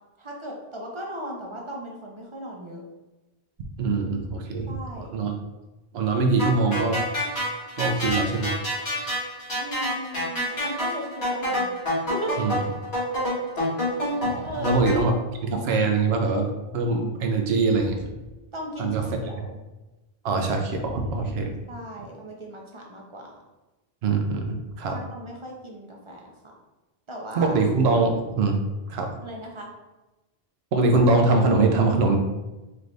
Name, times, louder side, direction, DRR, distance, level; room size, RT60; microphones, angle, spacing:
voice 1, 0.2-2.8 4.7-5.2 9.5-11.7 12.1-12.3 14.4-15.1 18.5-19.6 21.7-23.4 24.9-26.5 27.1-27.6 29.2-29.7, equal, 35° right, -1 dB, 0.6 m, -37 dB
voice 2, 3.8-4.7 5.1-5.3 5.9-7.0 7.8-8.5 12.4-12.6 14.2-15.1 15.4-18.0 18.8-19.0 20.2-21.5 24.0-24.9 27.4-28.6 28.9-29.1 30.7-32.2, right 3 dB, 85° right, 4 dB, 0.9 m, -23 dB
sound 1, 6.4-15.0, equal, 85° left, 1.9 m, -27 dB
sound 2, 17.4-19.0 20.6-21.8, equal, 60° left, 1.2 m, -42 dB
4.6 x 3.2 x 2.6 m, 1.1 s
omnidirectional pair, 1.0 m